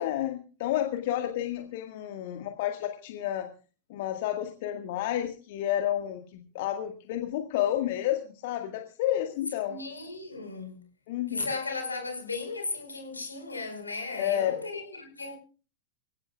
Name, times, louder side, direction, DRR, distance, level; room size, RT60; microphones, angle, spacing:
voice 1, 0.0-3.5 3.9-9.8 11.1-11.5 14.2-14.5, left 12 dB, 50° left, 1.8 m, -30 dB
voice 2, 9.6-10.8 11.3-15.4, left 3 dB, 80° left, 4.9 m, -36 dB
25.5 x 16.5 x 2.4 m
figure-of-eight pair, 90°, 0 cm